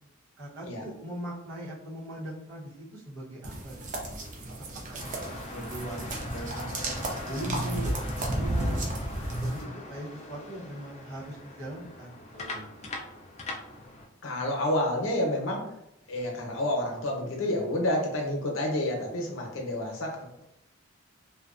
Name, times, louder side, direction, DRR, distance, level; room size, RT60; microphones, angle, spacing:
voice 1, 0.4-4.1 4.9-6.7 7.2-8.8 9.4-12.9, right 1 dB, 80° right, -6 dB, 0.9 m, -40 dB
sound 1, 3.4-9.6, right 1 dB, 40° right, 0.5 m, -33 dB
sound 2, 5.0-14.1, left 2 dB, 35° left, 0.3 m, -42 dB
voice 2, 14.2-15.7 16.1-20.4, left 1 dB, 75° left, 0 dB, 0.7 m, -29 dB
2.5 x 2.2 x 2.4 m, 0.81 s
head